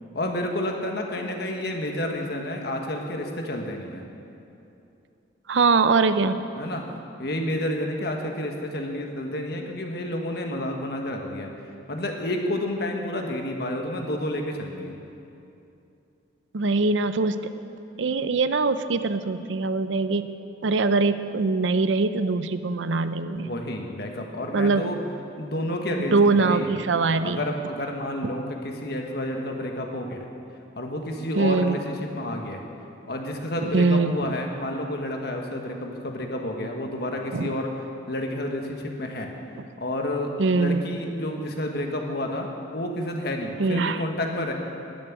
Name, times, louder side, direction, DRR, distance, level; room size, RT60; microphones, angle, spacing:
voice 1, 0.1-4.0 6.6-6.8 7.2-11.5 11.9-15.0 23.4-25.0 25.4-26.8 27.2-30.3 30.8-32.6 33.1-37.7 38.1-39.3 39.8-44.5, left 1 dB, 60° left, 2 dB, 1.5 m, -30 dB
voice 2, 5.5-6.5 16.5-17.5 18.0-20.3 20.6-23.5 24.5-24.9 25.9-27.4 31.4-31.8 33.6-34.3 37.3-37.6 39.6-39.7 40.4-40.8 43.6-44.0, right 3 dB, 80° right, 11 dB, 0.6 m, -23 dB
13.0 x 7.4 x 9.3 m, 2.7 s
head